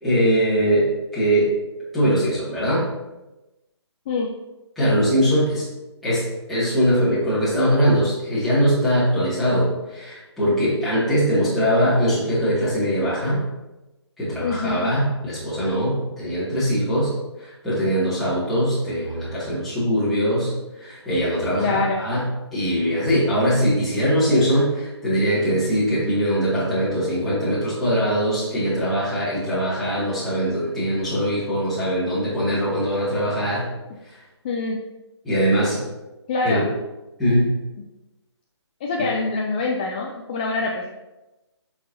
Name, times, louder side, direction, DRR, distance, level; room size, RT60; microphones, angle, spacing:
voice 1, 0.0-1.5 1.9-2.9 4.8-5.7 6.0-13.4 14.2-22.2 22.5-33.7 34.1-34.2 35.2-35.8 36.4-36.6 37.2-37.5, equal, ahead, -12 dB, 2.1 m, -21 dB
voice 2, 14.4-14.9 19.9-20.0 21.6-22.0 34.4-34.8 36.3-36.7 38.8-40.9, left 3 dB, 20° left, -1 dB, 0.4 m, -25 dB
8.1 x 5.8 x 2.7 m, 1.0 s
hypercardioid pair, 155°, 15 cm